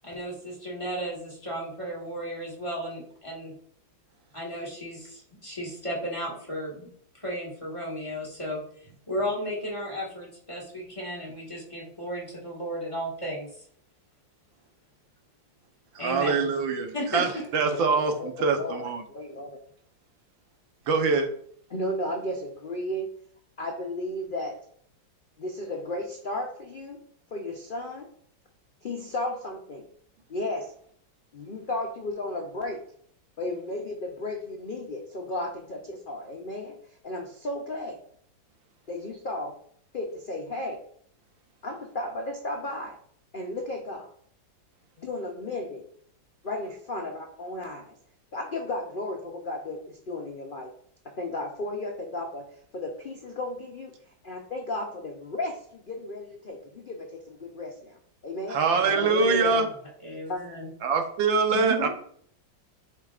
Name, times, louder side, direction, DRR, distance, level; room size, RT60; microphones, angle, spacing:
voice 1, 0.0-3.5 4.3-13.5 16.0-16.4 16.9-17.5 58.7-59.7 60.0-60.7 61.5-61.9, equal, 15° left, -4 dB, 1.6 m, -34 dB
voice 2, 15.9-19.0 20.9-21.3 58.5-59.7 60.8-61.9, right 4 dB, 80° right, 4 dB, 1.7 m, -24 dB
voice 3, 17.7-19.6 21.7-23.1 23.6-24.5 25.4-27.0 27.3-28.1 28.8-29.9 30.3-30.7 31.3-32.8 33.4-36.8 37.0-38.0 38.9-39.5 39.9-40.8 41.6-43.0 43.3-44.1 45.0-45.8 46.4-47.9 48.3-50.7 51.2-52.4 52.7-53.9 54.2-58.0 58.2-58.6 59.0-59.5 60.3-60.4, left 2 dB, 65° left, 1 dB, 0.5 m, -34 dB
10.5 x 4.6 x 2.4 m, 0.62 s
omnidirectional pair, 2.1 m